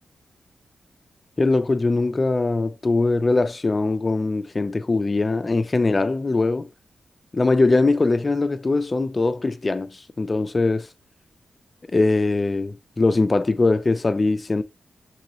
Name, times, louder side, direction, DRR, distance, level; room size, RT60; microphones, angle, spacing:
voice 1, 1.4-6.7 7.3-10.9 11.9-14.6, left 3 dB, 25° left, 0.3 m, -21 dB
3.0 x 2.9 x 2.7 m
wide cardioid pair, 155°, 0 cm